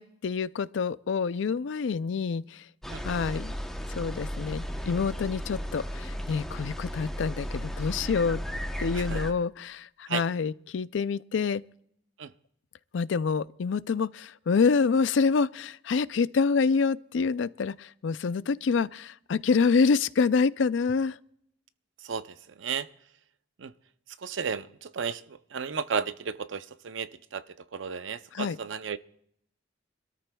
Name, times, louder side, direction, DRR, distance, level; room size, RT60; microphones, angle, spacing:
voice 1, 0.0-2.6 3.0-3.5 4.0-8.4 8.8-11.6 12.9-21.2 28.3-28.6, left 5 dB, 80° left, 0.4 m, -27 dB
sound 1, 2.8-9.3, equal, ahead, 0.8 m, -35 dB
voice 2, 22.0-22.9 23.6-23.7 24.2-29.0, right 6 dB, 85° right, 0.6 m, -34 dB
26.0 x 13.5 x 2.3 m
head